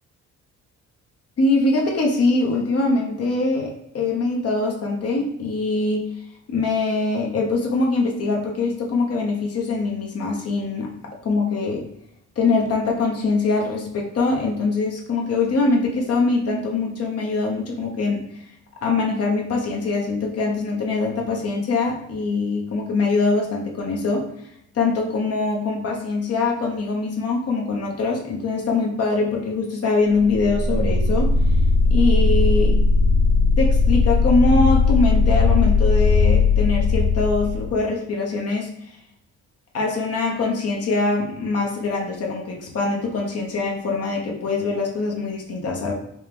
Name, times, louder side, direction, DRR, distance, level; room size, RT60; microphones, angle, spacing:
voice 1, 1.4-6.1 6.5-10.9 11.2-11.9 12.4-18.2 18.8-24.3 24.7-31.3 31.9-32.7 33.6-38.7 39.7-45.9, left 3 dB, 50° left, -1 dB, 1.1 m, -23 dB
sound 1, 30.2-37.8, left 3 dB, 70° left, 1.3 m, -18 dB
4.4 x 2.2 x 3.6 m, 0.78 s
cardioid pair, 90°, 30 cm